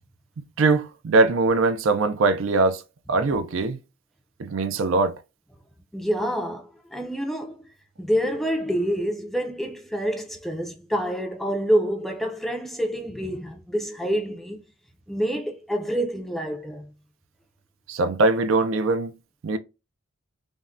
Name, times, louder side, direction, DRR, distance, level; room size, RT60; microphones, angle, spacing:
voice 1, 0.6-2.8 3.1-3.8 4.4-5.2 17.9-19.1 19.4-19.6, right 3 dB, 65° right, 0.4 m, -21 dB
voice 2, 5.9-7.6 8.0-14.6 15.1-16.9, equal, ahead, 0.4 m, -27 dB
3.5 x 2.1 x 2.4 m
head